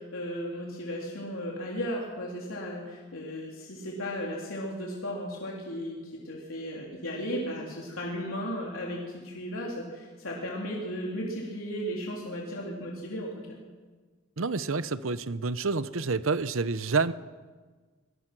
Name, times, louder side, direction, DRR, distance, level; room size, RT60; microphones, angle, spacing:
voice 1, 0.0-13.6, equal, 90° left, -2 dB, 3.5 m, -35 dB
voice 2, 14.4-17.1, right 4 dB, 80° right, 14 dB, 0.8 m, -28 dB
24.5 x 21.0 x 6.1 m, 1.4 s
head